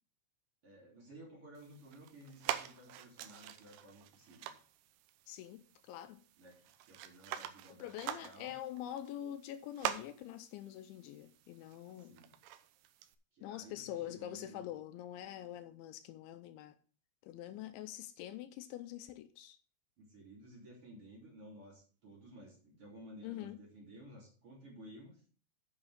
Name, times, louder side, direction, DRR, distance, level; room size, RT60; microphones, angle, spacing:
voice 1, 0.6-4.6 6.4-8.5 12.1-12.3 13.3-14.6 20.0-25.2, right 1 dB, 35° right, 3.5 m, -55 dB
sound 1, 1.5-13.1, right 12 dB, 85° right, 2.3 m, -45 dB
voice 2, 5.3-6.2 7.8-12.2 13.4-16.7 17.2-19.6 23.2-23.6, left 12 dB, 85° left, 3.0 m, -45 dB
8.8 x 7.4 x 5.0 m
omnidirectional pair, 5.4 m